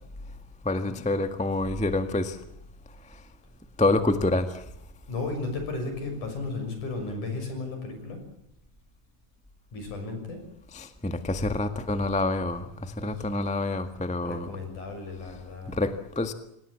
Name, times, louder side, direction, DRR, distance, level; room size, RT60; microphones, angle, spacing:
voice 1, 0.6-2.4 3.8-4.5 10.7-14.5 15.7-16.3, left 2 dB, 10° left, 9 dB, 0.3 m, -27 dB
voice 2, 5.1-8.2 9.7-10.4 13.0-13.3 14.2-15.8, left 3 dB, 65° left, 5 dB, 8.2 m, -34 dB
26.5 x 19.0 x 8.7 m, 0.79 s
omnidirectional pair, 3.8 m